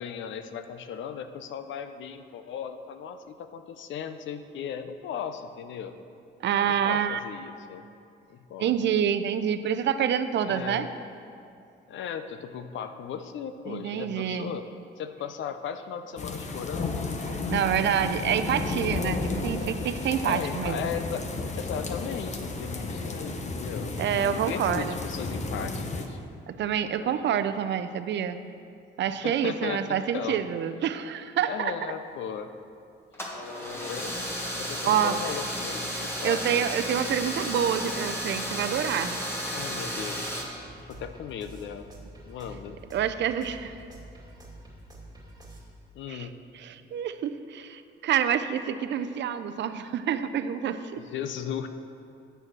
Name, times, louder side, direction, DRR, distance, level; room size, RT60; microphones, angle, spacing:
voice 1, 0.0-6.0 6.6-7.8 8.3-8.7 10.4-10.9 11.9-14.6 15.0-18.1 20.2-21.2 21.5-26.2 27.0-27.4 29.2-30.4 31.4-32.5 33.6-34.2 34.6-36.6 39.5-40.5 40.8-41.9 42.3-42.8 45.9-46.4 51.0-51.7, left 8 dB, 70° left, 9 dB, 0.6 m, -37 dB
voice 2, 6.4-7.2 8.6-10.9 13.7-14.5 17.3-20.9 24.0-24.9 26.5-28.4 29.0-31.7 34.8-35.2 36.2-39.2 42.9-43.7 46.1-46.3 46.6-51.0, right 9 dB, 65° right, 10 dB, 0.5 m, -27 dB
sound 1, 16.2-26.1, left 3 dB, 35° left, 0.9 m, -33 dB
sound 2, 33.1-40.4, equal, 10° left, 1.7 m, -33 dB
sound 3, 40.6-45.6, right 1 dB, 20° right, 2.3 m, -47 dB
9.1 x 6.5 x 6.0 m, 2.5 s
cardioid pair, 90°, 20 cm